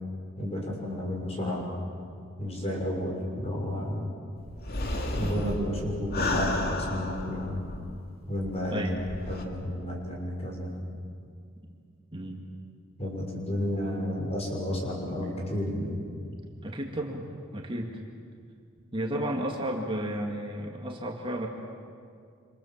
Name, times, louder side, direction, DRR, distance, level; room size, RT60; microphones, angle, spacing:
voice 1, 0.4-1.6 2.4-4.1 5.1-7.6 8.3-8.9 9.3-10.7 13.0-16.0, left 1 dB, 30° left, -1 dB, 6.3 m, -31 dB
sound 1, 4.5-8.1 8.4-8.5 9.0-9.4, left 2 dB, 50° left, 2.5 m, -32 dB
voice 2, 16.6-17.3 17.5-17.9 18.9-21.5, right 1 dB, 25° right, 0 dB, 2.2 m, -32 dB
28.5 x 27.0 x 7.5 m, 2.3 s
head